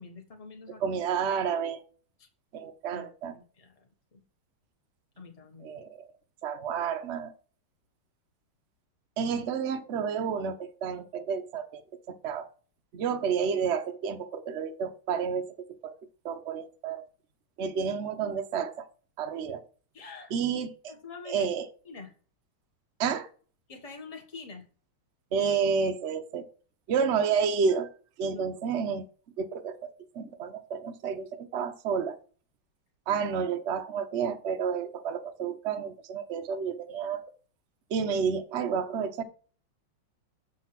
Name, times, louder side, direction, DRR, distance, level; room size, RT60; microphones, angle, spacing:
voice 1, 0.0-1.0 2.2-2.3 2.9-4.2 5.2-5.7 19.9-20.3 20.9-21.5 21.8-22.1 23.7-24.7 28.3-28.4, left 4 dB, 20° left, 4 dB, 1.1 m, -46 dB
voice 2, 0.8-1.8 2.5-3.3 5.6-6.1 6.4-7.3 9.2-11.8 12.1-12.5 12.9-15.5 15.8-15.9 16.2-17.1 17.6-18.9 19.2-19.6 20.3-20.9 21.2-21.7 23.0-23.3 25.3-26.5 26.9-27.9 28.2-29.0 29.4-32.2 33.1-37.2 37.9-39.2, right 6 dB, 60° right, 6 dB, 0.7 m, -30 dB
7.3 x 4.0 x 5.8 m, 0.40 s
omnidirectional pair, 2.3 m